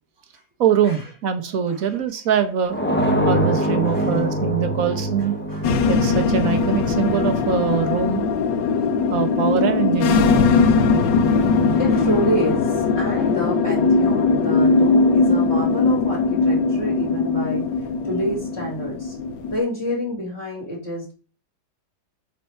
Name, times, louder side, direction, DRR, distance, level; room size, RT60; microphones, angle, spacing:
voice 1, 0.6-2.8 3.2-5.3 5.9-8.3 9.1-10.3, right 8 dB, 55° right, 1.4 m, -23 dB
sound 1, 2.7-7.4, equal, 5° left, 1.0 m, -24 dB
voice 2, 3.8-4.2 4.9-5.0 5.5-5.7 11.7-17.6 18.0-19.1 19.5-21.1, equal, 40° left, 2.9 m, -28 dB
sound 2, 5.6-19.6, left 4 dB, 90° left, 1.5 m, -20 dB
8.6 x 4.2 x 4.6 m
omnidirectional pair, 1.9 m